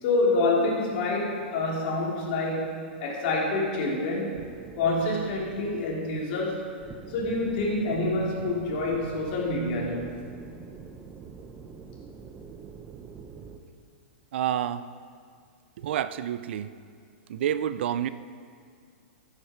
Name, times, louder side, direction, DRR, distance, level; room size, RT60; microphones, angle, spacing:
voice 1, 0.0-4.4 4.8-6.7 7.1-10.1, left 2 dB, 50° left, -3 dB, 3.2 m, -27 dB
sound 1, 4.3-13.6, right 5 dB, 20° right, 0.8 m, -45 dB
voice 2, 14.3-14.8 15.8-16.7 17.3-18.1, right 10 dB, 70° right, 14 dB, 0.5 m, -28 dB
14.0 x 8.4 x 4.5 m, 2.1 s
hypercardioid pair, 140°, 6 cm